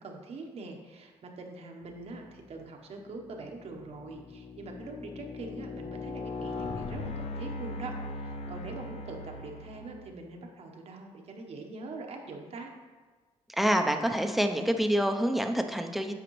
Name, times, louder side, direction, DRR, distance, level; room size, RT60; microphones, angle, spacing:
voice 1, 0.0-12.7, right 3 dB, 60° right, 2 dB, 1.0 m, -43 dB
sound 1, 2.3-2.7 3.3-10.1, left 3 dB, 60° left, 0.6 m, -39 dB
voice 2, 13.6-16.1, equal, ahead, 6 dB, 0.6 m, -27 dB
8.1 x 5.0 x 3.1 m, 1.4 s
cardioid pair, 75°, 12 cm